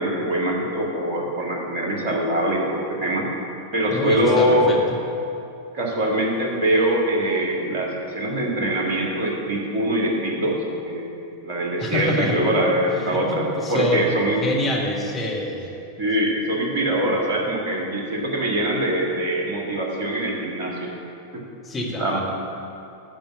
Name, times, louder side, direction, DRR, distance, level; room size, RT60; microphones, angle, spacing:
voice 1, 0.0-3.3 3.7-4.7 5.7-11.1 11.4-14.5 16.0-20.9 21.3-21.4 22.0-22.2, right 1 dB, 50° right, -1 dB, 1.9 m, -23 dB
voice 2, 3.9-4.8 11.8-12.4 13.0-14.1 14.4-15.7 21.6-22.2, left 1 dB, 20° left, -2 dB, 1.7 m, -26 dB
9.1 x 5.2 x 7.2 m, 2.8 s
figure-of-eight pair, 90°, 0 cm